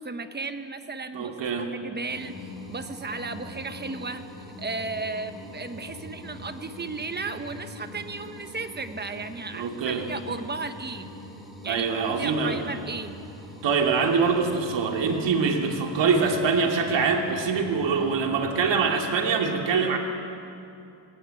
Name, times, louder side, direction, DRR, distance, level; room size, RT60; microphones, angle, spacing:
voice 1, 0.0-4.2 4.6-11.1 11.6-13.1, right 3 dB, 25° right, 8 dB, 1.1 m, -35 dB
voice 2, 1.1-1.7 9.5-10.0 11.7-12.6 13.6-20.0, right 5 dB, 80° right, 2 dB, 2.8 m, -24 dB
sound 1, 2.1-18.7, left 1 dB, ahead, 4.1 m, -43 dB
19.5 x 18.5 x 8.9 m, 2.7 s
wide cardioid pair, 150°, 44 cm